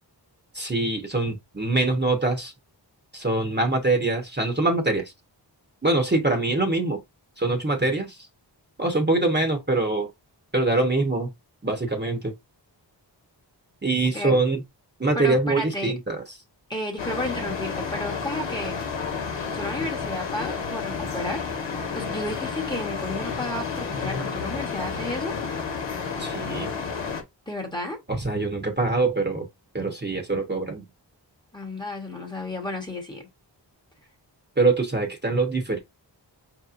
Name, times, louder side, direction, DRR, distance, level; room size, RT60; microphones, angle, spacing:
voice 1, 0.5-2.5 3.1-5.1 5.8-7.0 7.4-8.2 8.8-10.1 10.5-11.3 11.6-12.3 13.8-14.6 15.0-16.2 26.2-26.7 28.1-29.5 29.7-30.8 34.6-35.8, right 2 dB, 25° right, 1.1 m, -24 dB
voice 2, 15.1-16.0 16.7-18.8 19.5-21.4 21.9-25.3 27.5-28.0 31.5-33.3, left 1 dB, 10° left, 1.1 m, -32 dB
sound 1, 17.0-27.2, left 5 dB, 80° left, 1.0 m, -31 dB
4.6 x 2.9 x 2.5 m
wide cardioid pair, 70°, 43 cm